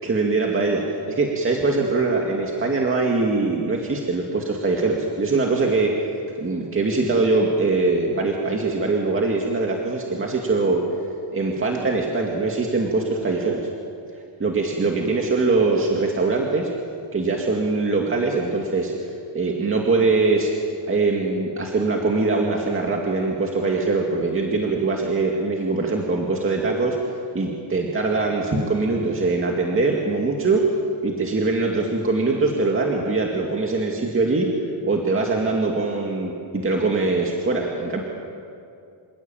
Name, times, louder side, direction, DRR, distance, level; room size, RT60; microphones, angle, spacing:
voice 1, 0.0-5.9 6.4-10.8 11.3-13.6 14.4-16.7 17.1-18.9 19.3-20.5 20.9-27.0 27.3-30.6 31.0-34.5 34.8-38.0, right 3 dB, 25° right, 0 dB, 2.2 m, -22 dB
27.0 x 17.5 x 9.1 m, 2.5 s
cardioid pair, 155°, 48 cm